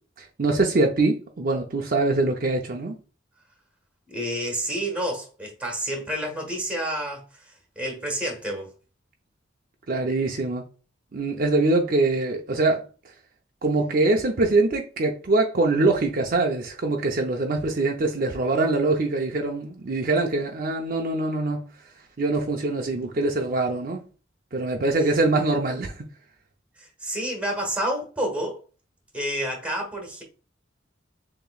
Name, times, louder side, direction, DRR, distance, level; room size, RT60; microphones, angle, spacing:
voice 1, 0.2-2.9 9.9-10.6 11.1-12.8 13.6-21.6 22.2-24.0 24.5-26.1, right 2 dB, 50° right, 0.6 m, -23 dB
voice 2, 4.1-8.7 26.8-28.6 29.1-30.2, right 1 dB, 5° right, 1.4 m, -29 dB
6.8 x 3.0 x 2.3 m
head